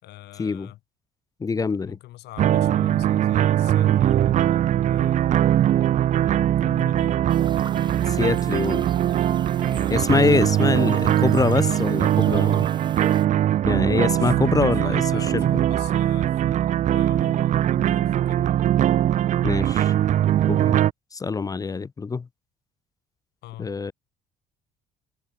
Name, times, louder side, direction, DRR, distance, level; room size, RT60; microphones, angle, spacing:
voice 1, 0.0-0.8 1.8-5.4 6.3-7.2 7.8-8.8 9.7-10.0 14.1-18.5 23.4-23.8, left 16 dB, 80° left, 6.8 m, -44 dB
voice 2, 1.4-2.0 8.2-8.9 9.9-12.7 13.6-15.0 15.3-15.4 19.4-19.9 20.5-20.8 21.1-22.3 23.6-23.9, left 4 dB, 20° left, 0.5 m, -24 dB
sound 1, 2.4-20.9, right 11 dB, 45° right, 0.4 m, -21 dB
sound 2, 7.3-13.2, right 4 dB, 25° right, 5.3 m, -39 dB
cardioid pair, 110°, 17 cm